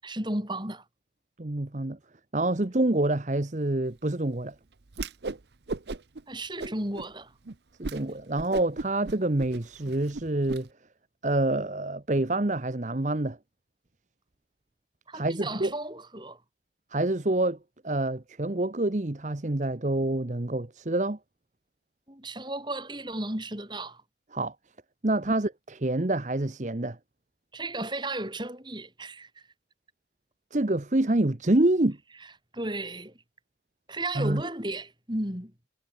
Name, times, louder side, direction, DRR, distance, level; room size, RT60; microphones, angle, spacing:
voice 1, 0.0-0.8 6.3-7.3 15.1-16.4 22.1-24.0 27.5-29.3 32.5-33.1 33.9-35.5, right 1 dB, 25° right, 7.0 m, -34 dB
voice 2, 1.4-2.0 2.3-4.5 7.8-10.7 11.2-13.4 15.1-15.7 16.9-17.6 17.8-21.2 24.3-24.5 25.0-27.0 30.5-32.0 34.1-34.4, right 2 dB, 40° right, 1.0 m, -27 dB
Whoosh swoosh swish, 4.9-5.4 5.7-6.2 6.6-7.1 7.5-7.6 7.8-8.0 8.3-10.6, right 3 dB, 70° right, 0.8 m, -35 dB
head